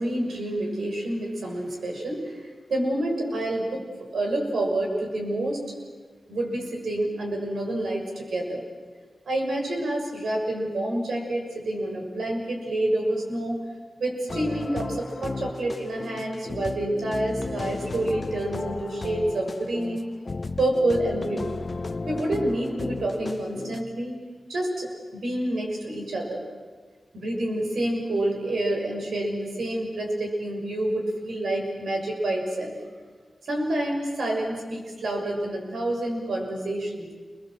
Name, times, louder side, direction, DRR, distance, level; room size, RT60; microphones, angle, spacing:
voice 1, 0.0-3.9 4.1-5.7 6.3-8.6 9.2-13.6 14.0-20.1 20.6-21.5 22.1-24.1 24.5-26.4 27.1-32.8 33.4-37.1, right 1 dB, 85° right, 1 dB, 6.5 m, -28 dB
sound 1, 14.3-23.8, left 3 dB, 45° left, 1.0 m, -34 dB
28.0 x 22.0 x 7.8 m, 1.5 s
wide cardioid pair, 75°, 0 cm